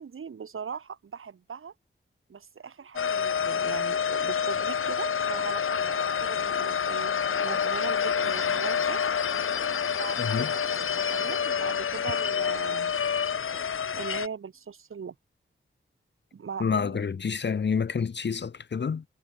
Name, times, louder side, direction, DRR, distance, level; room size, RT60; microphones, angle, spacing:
voice 1, 0.0-1.7 2.3-9.2 9.9-12.9 13.9-15.1 16.3-17.1, right 6 dB, 90° right, 5.8 m, -39 dB
sound 1, 3.0-14.3, left 7 dB, 85° left, 1.8 m, -28 dB
voice 2, 10.2-10.5 16.6-19.0, left 6 dB, 60° left, 1.5 m, -28 dB
wide cardioid pair, 135°, 21 cm